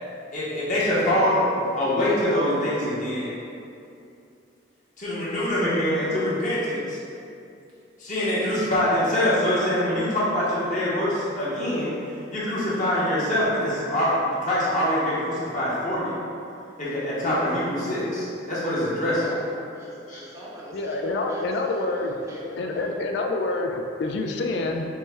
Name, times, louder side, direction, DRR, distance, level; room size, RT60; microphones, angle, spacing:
voice 1, 0.3-3.4 5.0-7.0 8.0-11.9 12.3-16.2 16.8-19.2 20.1-20.2, left 1 dB, 40° left, -9 dB, 0.8 m, -24 dB
voice 2, 19.2-23.0, right 1 dB, 15° right, -6 dB, 0.4 m, -41 dB
voice 3, 20.7-22.1 22.6-24.9, left 2 dB, 65° left, 3 dB, 0.3 m, -27 dB
4.6 x 2.1 x 3.3 m, 2.6 s
head